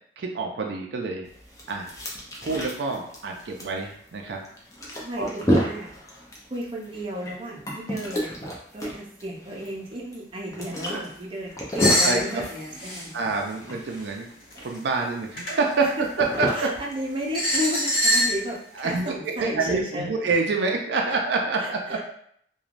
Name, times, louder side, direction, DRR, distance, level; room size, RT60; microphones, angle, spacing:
voice 1, 0.2-1.3 1.7-1.9 2.4-4.4 5.2-5.3 10.9-11.0 12.0-12.4 13.1-14.3 14.6-15.8 16.2-16.7 18.8-19.1 19.4-22.0, right 3 dB, 80° right, 2 dB, 0.4 m, -27 dB
sound 1, 1.3-17.8, equal, 20° left, 0.5 m, -31 dB
voice 2, 5.0-5.9 6.5-8.4 8.7-13.4 15.8-16.1 16.5-20.3 21.1-21.2 21.6-22.1, equal, 30° right, -3 dB, 0.5 m, -33 dB
sound 2, 11.8-12.2 12.8-13.0 14.5-14.8 15.4-15.5 16.5-16.6 17.3-18.4, equal, 60° left, 1.2 m, -22 dB
3.1 x 2.2 x 2.4 m, 0.65 s
head